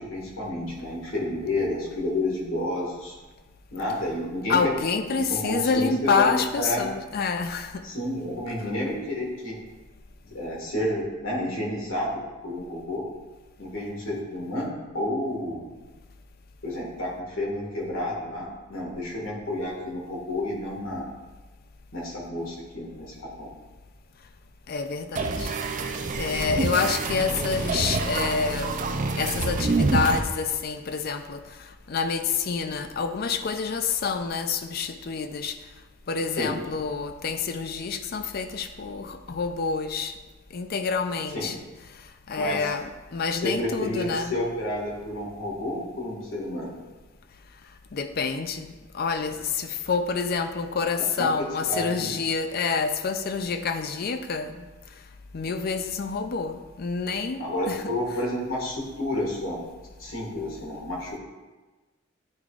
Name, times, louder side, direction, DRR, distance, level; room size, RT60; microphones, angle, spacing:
voice 1, 0.0-3.2 3.7-4.7 5.1-6.9 7.8-9.6 10.2-13.0 13.6-15.7 16.6-21.0 21.9-23.5 36.4-36.6 41.3-41.5 42.4-42.6 43.4-46.7 51.2-52.1 57.4-59.6 60.0-61.2, left 1 dB, 90° left, -2 dB, 1.9 m, -30 dB
voice 2, 4.5-7.9 24.7-25.5 26.2-31.4 31.9-35.6 36.1-40.1 40.5-41.6 42.3-44.3 47.9-54.7 55.3-57.8, left 5 dB, 50° left, 8 dB, 0.4 m, -27 dB
sound 1, 25.2-30.2, right 3 dB, 40° right, 0.4 m, -27 dB
9.5 x 4.7 x 2.5 m, 1.2 s
head